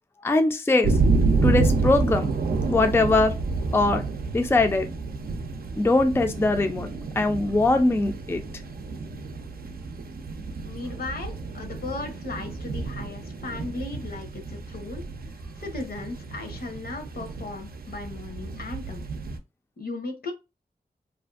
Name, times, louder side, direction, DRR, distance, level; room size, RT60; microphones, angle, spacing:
voice 1, 0.2-0.9 1.4-2.3 2.7-3.3 3.7-4.0 4.3-4.9 5.8-6.9 7.2-8.4, left 2 dB, 15° left, 0.3 m, -21 dB
sound 1, 0.8-19.4, right 3 dB, 70° right, 0.5 m, -29 dB
voice 2, 10.6-15.0 15.6-19.1 19.8-20.3, left 3 dB, 70° left, 0.7 m, -36 dB
2.5 x 2.4 x 2.3 m
wide cardioid pair, 95°, 16 cm